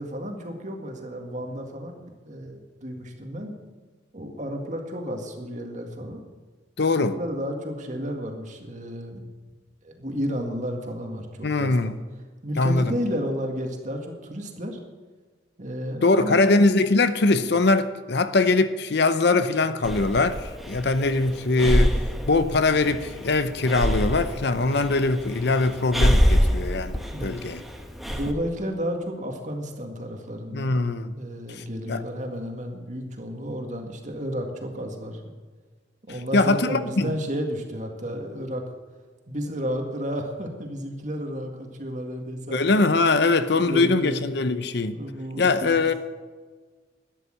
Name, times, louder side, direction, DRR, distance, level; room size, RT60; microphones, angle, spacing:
voice 1, 0.0-3.6 4.1-6.2 7.0-9.2 9.8-11.9 12.4-14.8 15.6-16.4 27.0-27.4 28.1-30.7 31.2-35.2 36.1-38.6 39.3-42.8 43.5-44.3 44.9-45.9, equal, 40° right, 1.9 m, -32 dB
voice 2, 6.8-7.2 11.4-11.9 12.6-12.9 16.0-22.0 22.3-27.6 30.5-31.1 31.5-32.0 36.3-37.1 42.5-44.9 45.4-45.9, left 3 dB, 60° left, 0.7 m, -22 dB
Breathing, 19.8-28.3, equal, ahead, 1.1 m, -25 dB
12.5 x 9.9 x 6.4 m
head